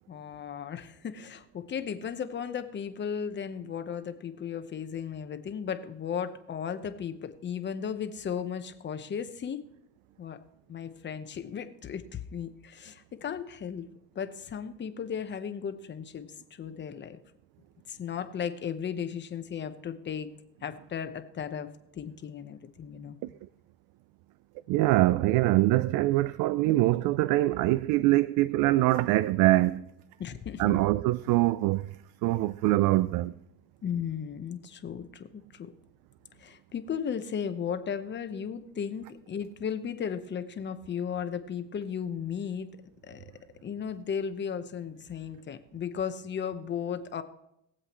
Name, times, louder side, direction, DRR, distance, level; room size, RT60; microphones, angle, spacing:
voice 1, 0.1-9.6 10.2-10.4 10.7-13.9 14.1-17.2 17.9-20.3 20.6-23.2 30.2-30.8 33.8-35.7 36.4-42.7 43.0-43.2 43.6-47.2, left 7 dB, 35° left, 1.0 m, -35 dB
voice 2, 24.7-29.9 30.6-31.9 32.2-33.3, right 17 dB, 70° right, 0.5 m, -24 dB
21.5 x 7.7 x 3.1 m
cardioid pair, 120°, 33 cm